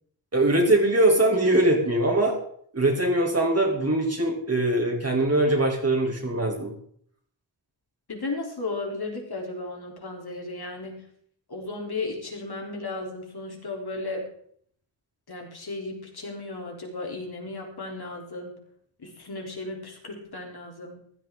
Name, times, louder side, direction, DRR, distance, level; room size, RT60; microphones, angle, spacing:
voice 1, 0.3-2.4 2.7-6.7, right 1 dB, 30° right, 0 dB, 2.8 m, -22 dB
voice 2, 8.1-11.1 11.5-14.3 15.3-18.6 19.0-21.0, left 2 dB, 50° left, 1 dB, 3.5 m, -35 dB
15.5 x 12.5 x 3.8 m, 0.63 s
wide cardioid pair, 135°, 47 cm